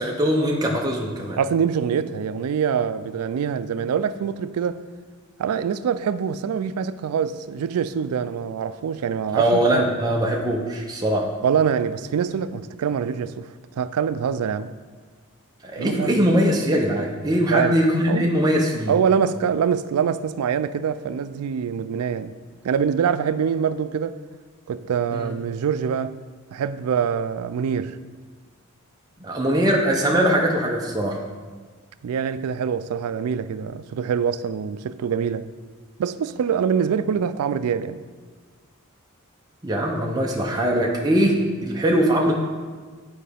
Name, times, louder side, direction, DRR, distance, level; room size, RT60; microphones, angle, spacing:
voice 1, 0.0-1.4 9.3-11.3 15.6-18.9 25.1-25.3 29.2-31.2 39.6-42.3, equal, 20° right, 0.6 m, -21 dB
voice 2, 1.4-4.8 5.4-9.8 11.4-14.7 15.8-16.3 17.5-17.8 18.1-18.4 18.9-22.3 22.6-24.2 24.7-26.2 26.5-28.0 32.0-35.5 36.0-38.0, right 7 dB, 85° right, 0.3 m, -24 dB
9.9 x 4.6 x 3.4 m
head